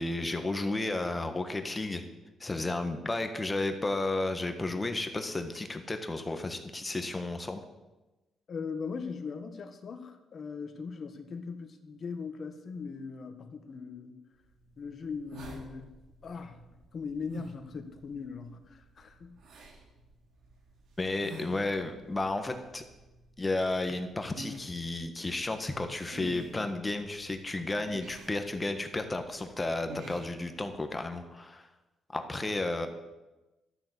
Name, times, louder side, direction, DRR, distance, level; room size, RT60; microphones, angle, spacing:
voice 1, 0.0-2.0 2.4-7.6 21.0-22.8 23.4-31.7 32.1-32.9, left 2 dB, 20° left, 7 dB, 1.5 m, -32 dB
voice 2, 8.5-14.2 14.8-16.0 16.2-16.6 16.9-19.4, left 5 dB, 50° left, 7 dB, 1.5 m, -39 dB
sound 1, 14.4-31.0, right 1 dB, 75° right, 3.2 m, -50 dB
12.5 x 7.0 x 8.3 m, 1.1 s
cardioid pair, 90°, 0 cm